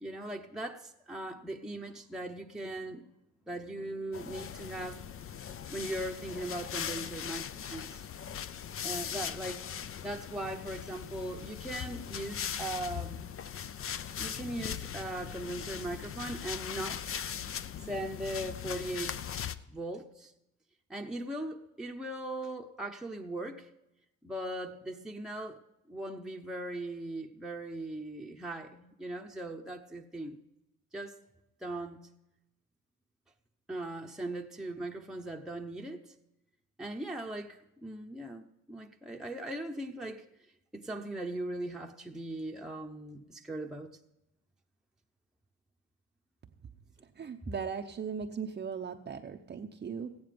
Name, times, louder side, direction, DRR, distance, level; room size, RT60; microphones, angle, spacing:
voice 1, 0.0-3.1 3.5-5.0 5.7-8.1 8.8-9.7 10.0-13.2 14.2-17.2 17.8-19.2 19.7-20.3 20.9-23.7 24.2-25.6 25.9-30.4 30.9-31.2 31.6-32.1 33.7-36.1 36.8-40.2 40.7-43.9 47.5-47.6, right 1 dB, ahead, 0.9 m, -39 dB
sound 1, 4.1-19.6, left 8 dB, 45° left, 0.6 m, -39 dB
voice 2, 47.2-50.2, right 6 dB, 35° right, 0.7 m, -38 dB
15.0 x 9.4 x 5.1 m
cardioid pair, 90°, 30 cm